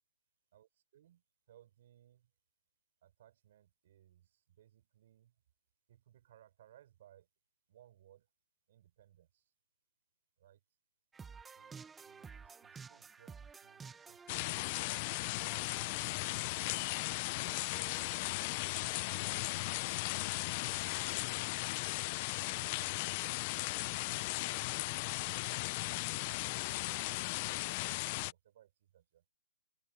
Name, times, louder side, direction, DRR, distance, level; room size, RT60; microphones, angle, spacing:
voice 1, 0.5-2.3 3.0-5.4 5.9-7.3 7.7-8.3 8.7-9.5 10.4-10.6 11.5-16.5 17.3-19.7 20.0-21.7 22.7-24.9 25.7-29.3, right 12 dB, 50° right, 5.6 m, -65 dB
sound 1, 11.1-18.4, right 5 dB, 10° right, 0.9 m, -54 dB
sound 2, 14.3-28.3, left 24 dB, 35° left, 0.5 m, -36 dB
open air
hypercardioid pair, 150°, 0 cm